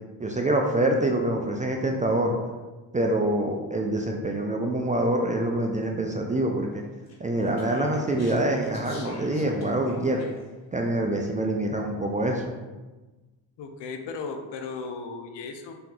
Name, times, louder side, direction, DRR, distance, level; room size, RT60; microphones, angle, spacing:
voice 1, 0.2-2.3 2.9-6.8 7.2-10.2 10.7-12.5, right 1 dB, 15° right, 1 dB, 0.4 m, -25 dB
Speech, 7.1-10.5, left 1 dB, 30° left, 1.3 m, -46 dB
voice 2, 13.6-15.7, left 4 dB, 55° left, 5 dB, 0.7 m, -36 dB
3.5 x 2.9 x 3.8 m, 1.2 s
supercardioid pair, 65°, 50 cm